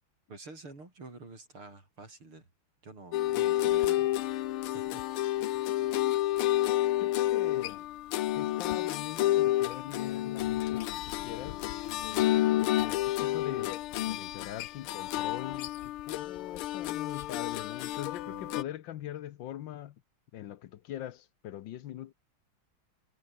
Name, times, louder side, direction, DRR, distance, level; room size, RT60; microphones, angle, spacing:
voice 1, 0.3-2.5 2.8-4.1 4.7-5.1 5.4-5.7 18.3-18.6, right 3 dB, 85° right, 7.6 m, -49 dB
sound 1, 3.1-18.6, left 15 dB, 90° left, 1.7 m, -30 dB
voice 2, 7.0-7.9 8.4-20.0 20.3-22.1, left 12 dB, 70° left, 1.4 m, -42 dB
omnidirectional pair, 2.3 m